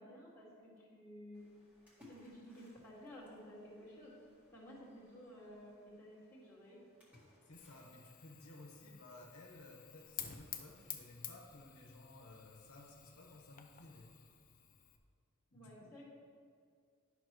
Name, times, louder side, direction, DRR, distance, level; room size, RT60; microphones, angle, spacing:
voice 1, 0.0-1.5 2.1-4.2 4.5-6.8 15.5-16.0, equal, 10° left, -8 dB, 2.0 m, -54 dB
Splash splatter, 1.3-11.3, left 1 dB, 5° right, 1.9 m, -67 dB
voice 2, 7.4-14.1 15.5-15.9, left 2 dB, 75° left, -1 dB, 1.1 m, -56 dB
Fire, 7.5-15.0, left 10 dB, 40° left, 0.5 m, -52 dB
11.0 x 6.0 x 3.1 m, 2.2 s
head